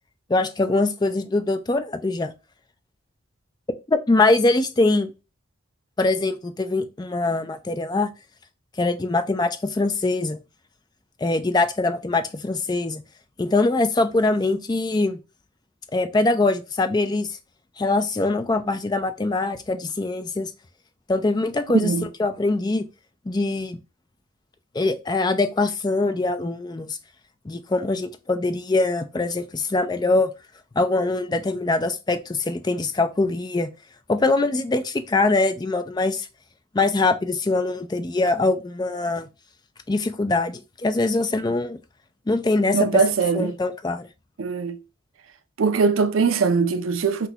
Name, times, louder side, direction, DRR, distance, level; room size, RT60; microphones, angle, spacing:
voice 1, 0.3-2.3 3.9-5.1 6.0-8.1 8.8-10.4 11.2-13.0 13.4-15.2 15.9-17.4 17.8-20.5 21.1-21.9 22.2-22.8 23.3-23.8 24.7-27.0 27.5-30.3 30.8-33.7 34.1-36.3 36.7-39.3 39.9-41.8 42.3-43.0 43.3-44.1, left 2 dB, 20° left, 0.4 m, -23 dB
voice 2, 21.7-22.1 42.7-43.5 44.4-44.8 45.6-47.3, right 5 dB, 85° right, 0.5 m, -21 dB
5.9 x 2.2 x 2.8 m
head